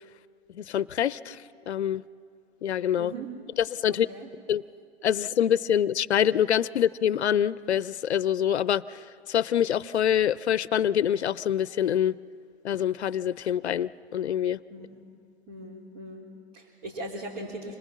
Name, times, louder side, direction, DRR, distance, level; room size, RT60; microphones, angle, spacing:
voice 1, 0.6-2.0 2.6-3.1 3.6-4.1 4.5-4.6 5.0-12.1 12.6-14.6, left 9 dB, 85° left, 18 dB, 0.6 m, -25 dB
voice 2, 3.0-3.3 3.9-4.3 14.7-15.0 15.5-17.7, right 1 dB, 50° right, -2 dB, 3.5 m, -39 dB
26.5 x 20.0 x 7.3 m, 2.3 s
hypercardioid pair, 125°, 32 cm